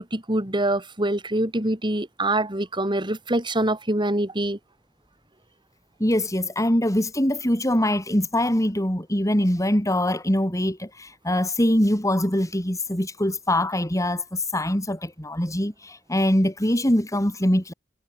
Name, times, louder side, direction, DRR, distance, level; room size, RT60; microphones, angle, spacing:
voice 1, 0.0-4.6, right 1 dB, 25° right, 4.4 m, -25 dB
voice 2, 6.0-17.7, left 1 dB, 15° left, 4.9 m, -23 dB
head